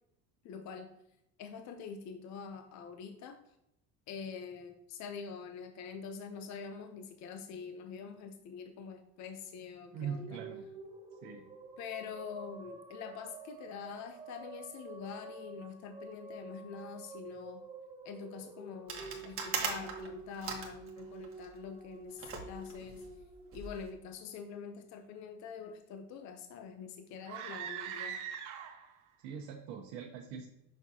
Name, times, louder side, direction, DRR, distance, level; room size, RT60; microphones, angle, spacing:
voice 1, 0.4-0.9 1.4-3.4 4.1-10.4 11.8-17.6 18.0-23.0 23.5-28.2, left 6 dB, 50° left, 6 dB, 0.7 m, -45 dB
sound 1, 9.9-24.4, right 3 dB, 15° right, 0.6 m, -50 dB
voice 2, 9.9-10.7 11.2-11.5 29.2-30.5, right 7 dB, 90° right, 1 dB, 0.9 m, -42 dB
sound 2, 18.9-21.5 22.2-23.8, right 5 dB, 40° right, 1.4 m, -40 dB
sound 3, 27.2-29.0, right 8 dB, 60° right, 0.9 m, -41 dB
6.1 x 6.0 x 2.8 m, 0.85 s
cardioid pair, 125°, 35 cm